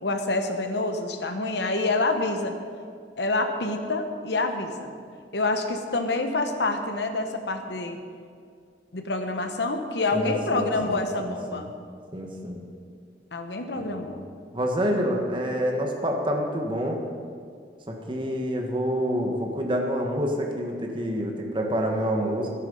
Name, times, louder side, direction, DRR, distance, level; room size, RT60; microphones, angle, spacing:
voice 1, 0.0-2.6 3.2-4.9 5.3-8.0 8.9-11.7 13.3-14.2, left 2 dB, 75° left, 6 dB, 1.1 m, -27 dB
voice 2, 10.1-11.6 12.1-12.6 13.8-14.1 14.5-17.0 17.9-22.5, equal, 30° right, 2 dB, 1.5 m, -28 dB
12.5 x 10.5 x 5.4 m, 2.2 s
head